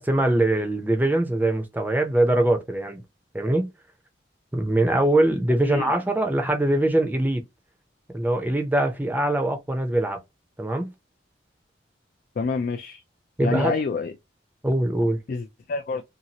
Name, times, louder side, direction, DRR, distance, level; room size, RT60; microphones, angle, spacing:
voice 1, 0.0-3.0 3.3-3.7 4.5-7.4 8.1-10.2 10.6-10.9 13.4-13.8 14.6-15.2, right 1 dB, 10° right, 0.6 m, -22 dB
voice 2, 12.4-13.0 13.4-14.1 15.3-16.0, left 4 dB, 50° left, 0.3 m, -28 dB
2.7 x 2.4 x 2.8 m
head